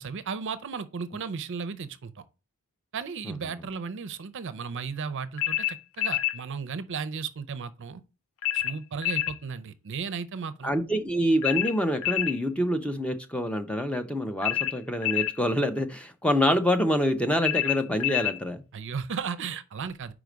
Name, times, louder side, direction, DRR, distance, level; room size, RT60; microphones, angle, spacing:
voice 1, 0.0-2.2 2.9-8.0 8.5-10.7 18.7-20.1, right 5 dB, 55° right, 0.5 m, -35 dB
sound 1, 5.4-6.4 8.4-9.4 11.4-12.4 14.4-15.4 17.4-18.4, left 16 dB, 60° left, 0.4 m, -27 dB
voice 2, 10.6-18.6, equal, 5° left, 0.6 m, -26 dB
4.9 x 4.7 x 5.1 m
head